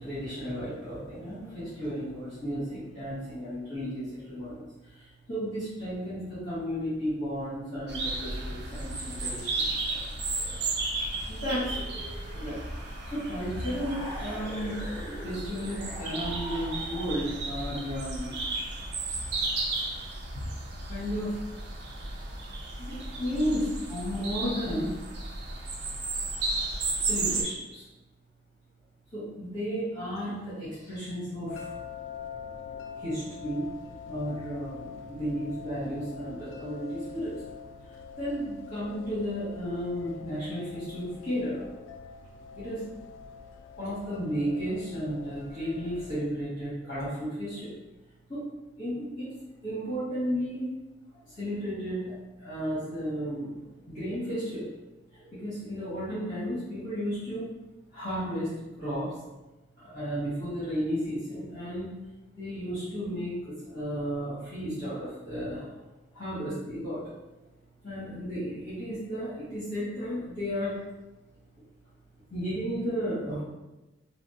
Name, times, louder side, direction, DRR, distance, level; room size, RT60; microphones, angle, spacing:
voice 1, 0.0-10.1 10.4-10.7 11.2-11.9 12.3-14.9 15.2-18.3 20.9-21.4 22.8-25.0 27.1-27.8 29.1-31.7 33.0-33.6 34.0-37.3 37.9-41.7 42.5-42.8 43.8-47.7 48.3-48.4 48.8-49.3 49.6-50.7 51.2-53.6 53.9-54.7 55.1-57.4 57.9-59.1 59.8-62.0 62.3-65.7 66.1-67.0 67.8-70.7 72.3-73.4, equal, 45° left, -13 dB, 1.3 m, -33 dB
sound 1, 7.9-27.4, right 2 dB, 65° right, 0.6 m, -34 dB
sound 2, 11.6-17.5, equal, 5° right, 1.1 m, -43 dB
sound 3, 31.5-46.2, left 6 dB, 85° left, 0.3 m, -44 dB
3.5 x 2.0 x 2.6 m, 1.1 s
head